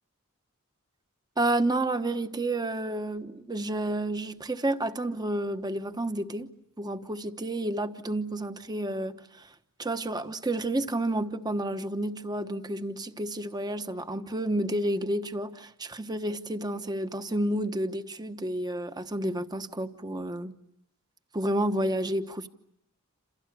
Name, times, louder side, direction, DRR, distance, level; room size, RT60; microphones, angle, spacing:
voice 1, 1.4-6.5 6.8-9.5 9.8-20.5 21.3-22.5, right 1 dB, 20° right, 1.1 m, -30 dB
28.5 x 28.5 x 6.8 m
head